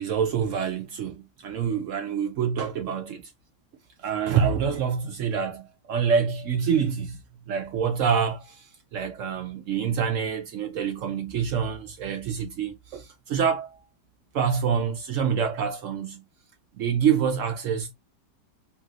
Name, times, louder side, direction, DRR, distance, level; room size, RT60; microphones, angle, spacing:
voice 1, 0.0-3.3 4.0-7.2 7.5-13.8 14.3-16.3 16.8-17.9, right 7 dB, 80° right, 0.7 m, -26 dB
3.3 x 3.0 x 2.4 m
omnidirectional pair, 1.9 m